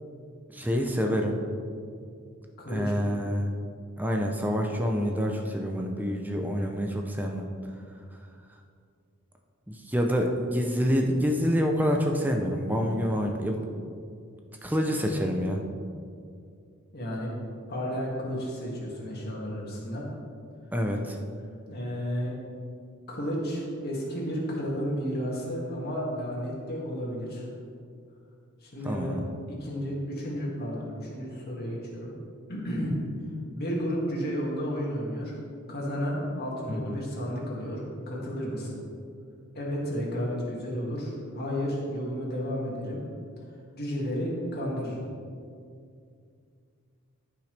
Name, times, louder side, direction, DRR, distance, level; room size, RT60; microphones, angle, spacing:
voice 1, 0.5-1.4 2.7-3.5 4.0-7.4 9.7-13.6 14.6-15.6 20.7-21.2 28.8-29.2 36.7-37.0, equal, 10° right, 2 dB, 0.6 m, -27 dB
voice 2, 2.6-3.1 16.9-17.3 17.7-20.1 21.7-22.4 23.1-27.5 28.6-29.2 29.5-32.1 32.5-33.0 33.5-35.4 35.7-38.8 39.5-43.0 43.7-45.1, equal, 45° left, -4 dB, 2.1 m, -32 dB
14.5 x 5.8 x 3.4 m, 2.3 s
head